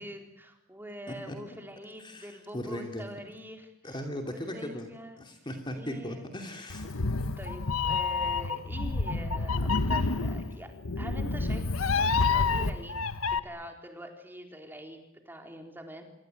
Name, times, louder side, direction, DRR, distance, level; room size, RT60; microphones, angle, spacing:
voice 1, 0.0-4.0 4.3-5.2 5.7-6.3 7.4-13.0 13.4-16.0, equal, 10° right, 3 dB, 4.1 m, -44 dB
voice 2, 2.0-3.0 3.8-4.9 5.2-6.8, left 1 dB, 20° left, 4 dB, 2.8 m, -38 dB
Meow, 6.7-13.4, left 4 dB, 80° left, 1.3 m, -28 dB
27.0 x 24.0 x 9.2 m, 0.83 s
head